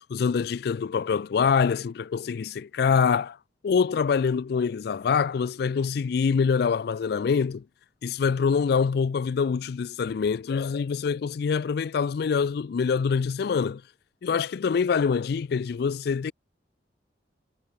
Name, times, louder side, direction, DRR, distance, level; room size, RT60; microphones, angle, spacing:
voice 1, 0.0-3.4 3.6-7.6 8.0-13.8 14.2-16.3, left 6 dB, 60° left, 0.4 m, -25 dB
head